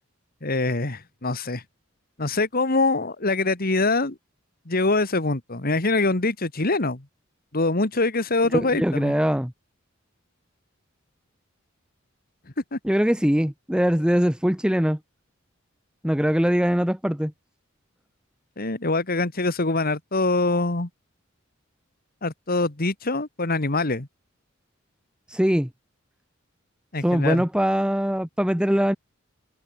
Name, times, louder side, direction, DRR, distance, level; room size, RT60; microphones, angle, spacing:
voice 1, 0.4-1.6 2.2-4.2 4.7-7.0 7.5-9.1 12.7-12.8 18.6-20.9 22.2-24.1 26.9-27.4, left 3 dB, 50° left, 2.0 m, -24 dB
voice 2, 8.5-9.5 12.8-15.0 16.0-17.3 25.3-25.7 27.0-29.0, equal, 5° right, 1.1 m, -22 dB
head